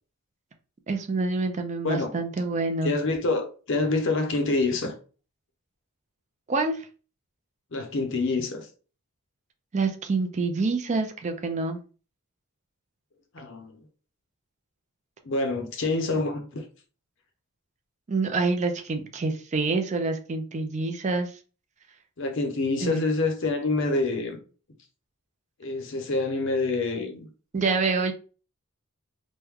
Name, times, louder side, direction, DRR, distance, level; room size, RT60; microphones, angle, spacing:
voice 1, 0.9-3.0 6.5-6.9 9.7-11.8 18.1-21.3 22.8-23.0 27.5-28.1, right 3 dB, 30° right, 0.4 m, -27 dB
voice 2, 2.8-4.9 7.7-8.7 13.3-13.8 15.2-16.6 22.2-24.4 25.6-27.3, left 3 dB, 55° left, 0.7 m, -26 dB
3.1 x 2.2 x 3.5 m
head